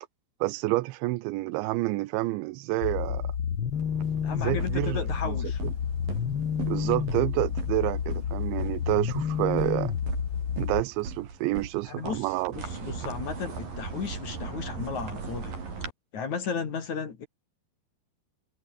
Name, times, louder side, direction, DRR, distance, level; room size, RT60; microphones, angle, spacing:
voice 1, 0.4-3.3 4.3-5.4 5.6-5.7 6.7-9.9 10.6-12.5, right 19 dB, 85° right, 3.1 m, -29 dB
sound 1, 2.8-10.8, left 8 dB, 75° left, 1.1 m, -30 dB
sound 2, 3.7-15.9, right 4 dB, 50° right, 7.5 m, -39 dB
voice 2, 4.2-5.6 11.9-15.5 16.1-17.3, left 6 dB, 45° left, 3.7 m, -34 dB
omnidirectional pair, 5.3 m